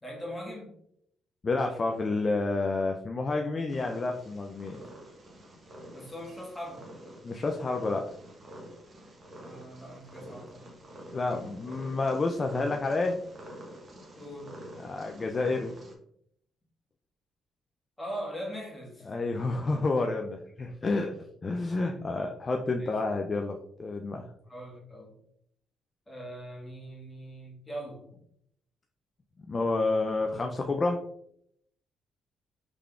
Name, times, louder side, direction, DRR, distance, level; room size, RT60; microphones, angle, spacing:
voice 1, 0.0-0.7 5.9-6.9 9.4-10.7 11.3-11.5 14.1-14.6 18.0-19.1 20.6-20.7 22.8-22.9 24.5-25.2 26.1-28.0, equal, 15° left, -3 dB, 1.4 m, -41 dB
voice 2, 1.4-4.8 7.2-8.1 11.1-13.2 14.8-15.7 19.1-21.2 21.4-24.2 29.5-31.0, left 3 dB, 35° left, 3 dB, 0.3 m, -29 dB
Purr, 3.7-15.9, right 1 dB, 40° right, 0.9 m, -48 dB
3.6 x 3.4 x 2.3 m, 0.71 s
cardioid pair, 90°, 0 cm